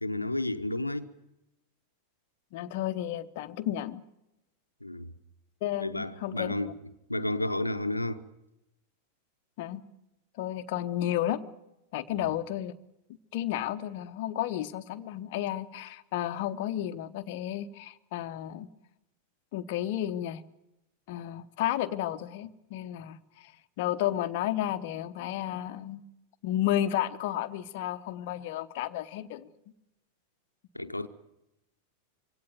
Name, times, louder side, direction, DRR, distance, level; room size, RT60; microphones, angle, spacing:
voice 1, 0.0-1.1 4.8-5.1 5.8-6.7 7.1-8.2 12.1-12.2 30.7-31.1, left 1 dB, 85° left, 0.9 m, -31 dB
voice 2, 2.5-4.0 5.6-6.5 9.6-9.8 10.4-11.4 11.9-12.7 13.3-18.7 19.5-20.4 21.1-23.5 23.8-26.0 26.4-29.5, left 12 dB, 50° left, 0.9 m, -32 dB
23.5 x 17.5 x 9.4 m
figure-of-eight pair, 90°, 0 cm